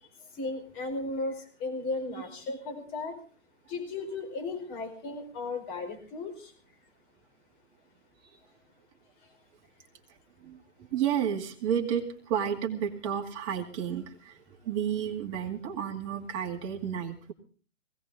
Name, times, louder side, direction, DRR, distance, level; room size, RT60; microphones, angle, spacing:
voice 1, 0.4-3.2 3.7-6.5, left 3 dB, 25° left, 5 dB, 4.7 m, -35 dB
voice 2, 10.4-17.3, right 8 dB, 25° right, 2 dB, 2.4 m, -32 dB
20.5 x 17.5 x 3.8 m, 0.41 s
hypercardioid pair, 150°, 37 cm